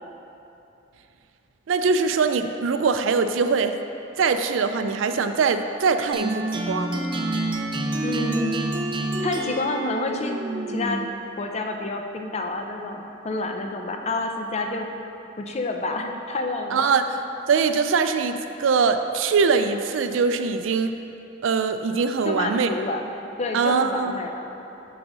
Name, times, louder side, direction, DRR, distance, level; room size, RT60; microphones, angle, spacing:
voice 1, 1.7-3.8 4.2-7.1 16.7-17.0 17.5-20.9 21.4-22.7 23.5-24.1, right 5 dB, 90° right, 8 dB, 0.4 m, -22 dB
sound 1, 6.1-11.2, right 1 dB, 25° right, 0.4 m, -28 dB
voice 2, 8.0-8.6 9.2-10.4 10.7-11.0 11.4-14.9 15.4-17.0 22.2-23.1 23.4-24.5, left 2 dB, 35° left, 4 dB, 0.5 m, -28 dB
6.1 x 4.9 x 6.1 m, 2.9 s
head